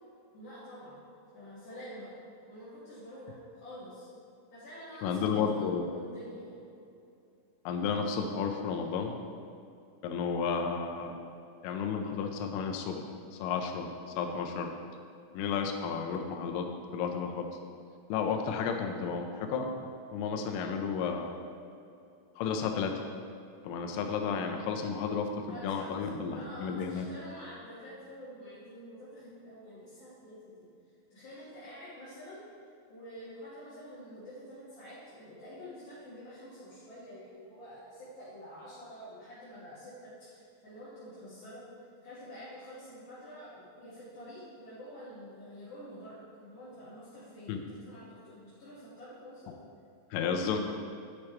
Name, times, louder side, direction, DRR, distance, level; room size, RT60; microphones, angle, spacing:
voice 1, 0.3-1.0 1.3-2.1 2.5-4.1 4.5-6.6 25.5-30.7 31.1-32.4 32.9-41.6 42.0-49.6, equal, 55° left, -13 dB, 2.4 m, -48 dB
voice 2, 5.0-5.9 7.7-9.1 10.0-11.2 11.6-13.0 13.3-13.9 14.2-14.7 15.3-16.7 16.9-17.5 18.1-19.7 20.1-21.4 22.4-23.0 23.6-25.3 25.6-27.1 47.5-47.6 50.1-50.6, left 6 dB, 80° left, 3 dB, 3.1 m, -32 dB
10.0 x 5.8 x 3.3 m, 2.6 s
omnidirectional pair, 6.0 m